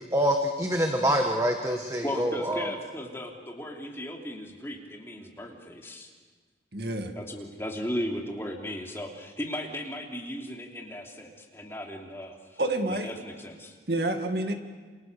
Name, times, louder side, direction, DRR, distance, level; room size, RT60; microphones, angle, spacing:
voice 1, 0.1-2.7, equal, 20° right, 3 dB, 1.6 m, -26 dB
voice 2, 2.0-6.1 7.1-12.6 12.9-13.8, equal, 15° left, 0 dB, 3.1 m, -36 dB
voice 3, 6.7-7.1 12.6-13.1 13.9-14.5, right 2 dB, 65° right, 5 dB, 2.2 m, -28 dB
29.0 x 28.0 x 6.9 m, 1.4 s
head